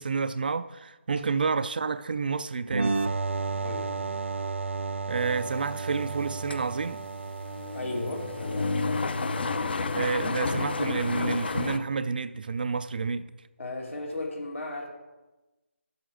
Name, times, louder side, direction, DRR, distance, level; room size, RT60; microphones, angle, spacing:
voice 1, 0.0-3.0 5.1-7.0 9.9-13.3, right 4 dB, 45° right, 0.4 m, -29 dB
sound 1, 2.7-10.2, right 4 dB, 70° right, 0.8 m, -33 dB
sound 2, 5.3-11.8, left 3 dB, 50° left, 0.7 m, -31 dB
voice 2, 7.7-8.8 13.6-14.9, left 2 dB, 75° left, 2.6 m, -35 dB
12.5 x 7.8 x 3.9 m
figure-of-eight pair, 165°, 7 cm